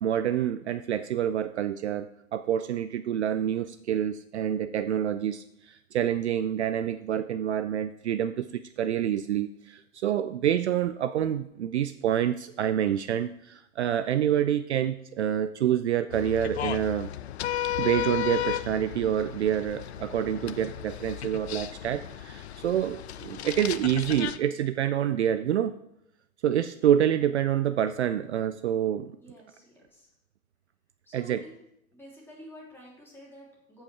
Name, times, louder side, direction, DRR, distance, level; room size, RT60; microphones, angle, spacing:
voice 1, 0.0-17.1 17.8-25.7 26.4-29.1 31.1-31.4, right 10 dB, 55° right, 11 dB, 0.5 m, -27 dB
sound 1, 16.1-24.4, left 11 dB, 50° left, 0.6 m, -34 dB
voice 2, 29.2-30.1 31.0-31.6 31.9-33.8, equal, 5° left, -4 dB, 3.1 m, -50 dB
14.5 x 5.6 x 4.6 m, 0.81 s
figure-of-eight pair, 110°, 42 cm